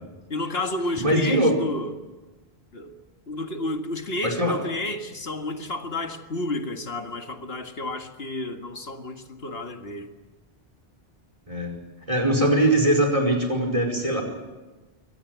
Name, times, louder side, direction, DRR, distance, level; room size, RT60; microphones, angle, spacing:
voice 1, 0.3-2.0 2.7-3.0 3.3-10.1, left 2 dB, 75° left, 5 dB, 2.1 m, -31 dB
voice 2, 1.0-1.6 4.2-4.6 11.5-11.7 12.1-14.2, right 1 dB, 30° right, 4 dB, 4.9 m, -21 dB
24.0 x 18.5 x 9.3 m, 1.2 s
omnidirectional pair, 1.0 m